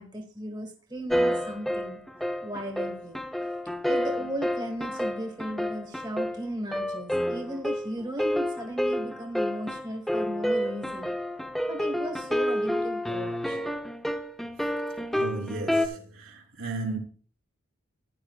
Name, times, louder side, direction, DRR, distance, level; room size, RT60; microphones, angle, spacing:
voice 1, 0.0-2.0 2.4-3.2 3.8-11.1 11.7-13.6, right 1 dB, 20° right, 1.4 m, -36 dB
sound 1, 1.1-15.9, equal, ahead, 0.7 m, -29 dB
voice 2, 15.1-17.0, right 3 dB, 85° right, 3.5 m, -35 dB
15.0 x 10.0 x 2.4 m
head